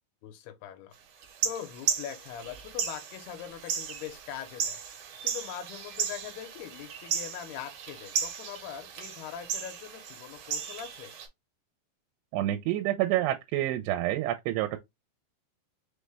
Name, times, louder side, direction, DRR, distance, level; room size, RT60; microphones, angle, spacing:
voice 1, 0.2-0.9 1.4-4.8 5.2-11.2, left 10 dB, 80° left, 2.7 m, -42 dB
sound 1, 1.2-11.3, right 8 dB, 65° right, 2.0 m, -35 dB
voice 2, 12.3-14.8, right 14 dB, 85° right, 2.7 m, -28 dB
6.3 x 2.1 x 3.3 m
omnidirectional pair, 4.8 m